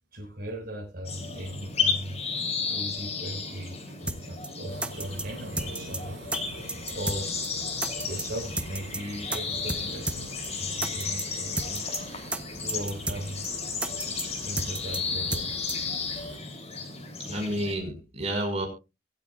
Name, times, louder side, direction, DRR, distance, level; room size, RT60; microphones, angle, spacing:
voice 1, 0.1-2.2 2.7-6.6 6.9-7.4 8.0-13.5 13.9-15.6, right 1 dB, 55° right, -1 dB, 5.1 m, -39 dB
sound 1, 1.1-17.7, left 5 dB, 40° left, 3.3 m, -33 dB
sound 2, 4.1-4.2 4.4-4.5 4.8-5.2 5.6-6.0 6.3-6.4 6.7-7.2 7.4-7.5 7.8-8.2 8.6-9.0 9.3-9.4 9.7-9.8 10.1-10.2 10.4-10.5 10.8-11.2 11.6-12.0 12.3-12.4 12.7-13.2 13.4-13.5 13.8-14.2 14.6-15.0 15.3-15.4 15.7-15.8, right 2 dB, 5° right, 0.8 m, -31 dB
sound 3, 4.7-16.4, right 1 dB, 85° right, 4.3 m, -45 dB
voice 2, 17.3-18.7, right 1 dB, 35° right, 2 dB, 5.3 m, -30 dB
24.0 x 8.6 x 2.4 m, 0.27 s
head